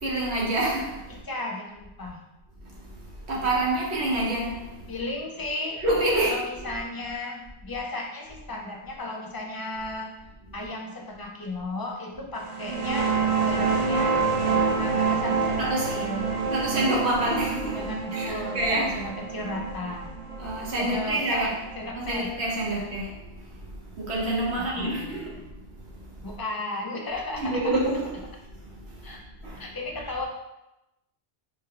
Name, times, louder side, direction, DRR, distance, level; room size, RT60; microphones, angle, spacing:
voice 1, 0.0-1.0 3.3-4.6 5.8-6.4 12.7-13.0 15.6-16.0 16.5-19.0 20.4-21.5 21.9-23.1 24.0-25.4 27.4-28.2 29.4-29.6, right 1 dB, 80° right, -4 dB, 1.2 m, -27 dB
voice 2, 1.3-2.2 4.9-5.8 6.2-10.1 10.5-13.1 13.4-14.2 14.4-16.3 17.7-20.1 20.8-22.3 22.7-22.8 24.6-25.4 26.2-27.8 29.0-29.2 29.6-30.3, left 2 dB, 30° left, -1 dB, 0.4 m, -35 dB
sound 1, 12.5-21.8, right 5 dB, 55° right, 0.4 m, -27 dB
4.0 x 2.2 x 3.8 m, 0.92 s
omnidirectional pair, 1.1 m